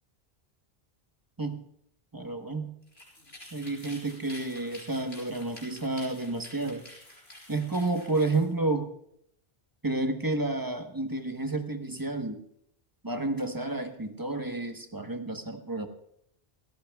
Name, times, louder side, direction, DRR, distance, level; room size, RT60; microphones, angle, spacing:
voice 1, 2.1-2.7 3.5-6.8 7.5-8.9 9.8-12.4 13.0-15.9, right 2 dB, 20° right, 5 dB, 1.2 m, -30 dB
sound 1, 2.8-8.5, left 1 dB, 80° left, 5.1 m, -49 dB
28.0 x 14.5 x 2.4 m, 0.73 s
omnidirectional pair, 1.1 m